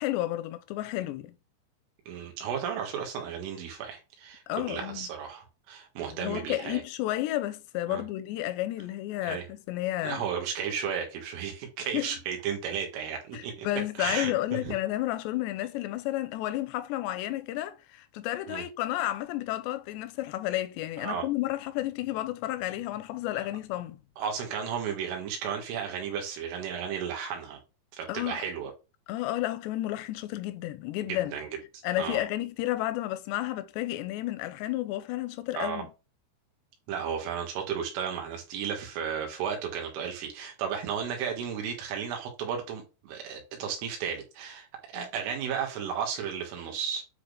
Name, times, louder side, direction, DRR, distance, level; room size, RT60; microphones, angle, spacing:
voice 1, 0.0-1.3 4.5-5.1 6.1-10.2 11.9-12.1 13.3-24.0 28.1-28.4 29.1-31.3 31.8-35.9 44.9-45.1, left 15 dB, 85° left, 2.6 m, -31 dB
voice 2, 2.1-6.8 7.9-8.0 9.2-9.4 10.0-13.7 14.0-14.7 18.5-18.6 21.0-21.2 24.2-27.6 27.9-28.7 31.1-31.5 32.0-32.2 35.5-35.8 36.9-47.0, right 7 dB, 85° right, 4.3 m, -34 dB
9.5 x 4.2 x 3.5 m
omnidirectional pair, 5.5 m